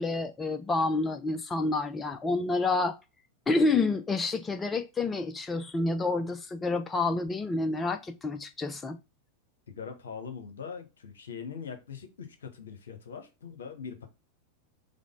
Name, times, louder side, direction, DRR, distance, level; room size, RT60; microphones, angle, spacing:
voice 1, 0.0-2.9 3.5-9.0, left 3 dB, 15° left, 0.3 m, -28 dB
voice 2, 9.7-14.1, left 6 dB, 65° left, 0.8 m, -42 dB
4.9 x 2.0 x 3.7 m
figure-of-eight pair, 90°, 0 cm